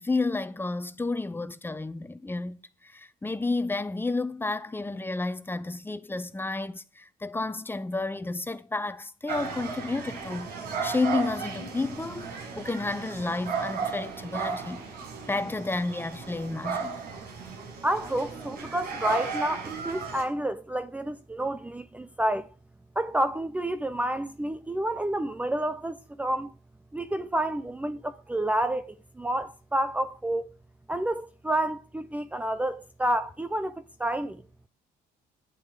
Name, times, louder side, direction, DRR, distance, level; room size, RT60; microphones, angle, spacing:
voice 1, 0.0-10.5 10.8-12.3 12.6-14.8 15.3-17.0, left 3 dB, 15° left, 1.0 m, -31 dB
sound 1, 9.3-20.2, right 5 dB, 60° right, 6.8 m, -35 dB
voice 2, 17.8-22.5 23.0-26.5 26.9-30.5 30.9-34.4, right 1 dB, 10° right, 0.7 m, -29 dB
16.5 x 11.0 x 5.0 m
cardioid pair, 110°, 17 cm